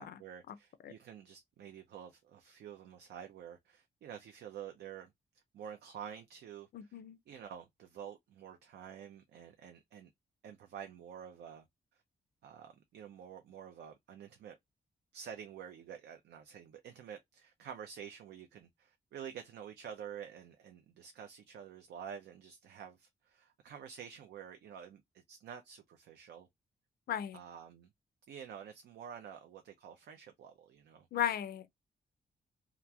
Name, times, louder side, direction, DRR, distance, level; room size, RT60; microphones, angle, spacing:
voice 1, 0.0-5.1 5.5-7.0 7.3-10.1 10.4-11.6 12.4-14.6 15.1-26.5 27.3-27.9 28.3-31.1, right 8 dB, 90° right, 0.5 m, -49 dB
voice 2, 6.7-7.2 27.1-27.4 31.1-31.7, left 10 dB, 65° left, 0.4 m, -35 dB
2.8 x 2.4 x 2.3 m
cardioid pair, 95°, 17 cm